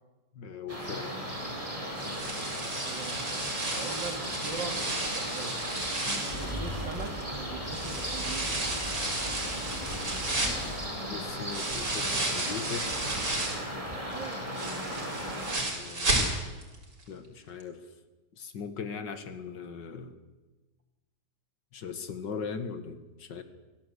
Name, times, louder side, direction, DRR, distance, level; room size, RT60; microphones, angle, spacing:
voice 1, 0.3-1.2 6.0-6.3 11.1-12.9 15.7-16.6 17.1-17.9 18.3-20.2 21.7-23.4, left 6 dB, 80° left, 9 dB, 2.3 m, -39 dB
sound 1, 0.7-15.6, equal, 20° right, 4.2 m, -37 dB
sound 2, 2.0-7.2 7.7-13.7 14.1-16.8 17.0-17.1 17.6-17.7, right 2 dB, 65° right, 5.0 m, -33 dB
voice 2, 2.8-3.2 3.7-5.6 6.3-8.7 14.1-14.4, right 4 dB, 85° right, 5 dB, 3.1 m, -41 dB
Engine starting, 6.3-11.8, equal, 10° left, 5.1 m, -41 dB
24.5 x 16.0 x 8.2 m, 1.2 s
omnidirectional pair, 1.9 m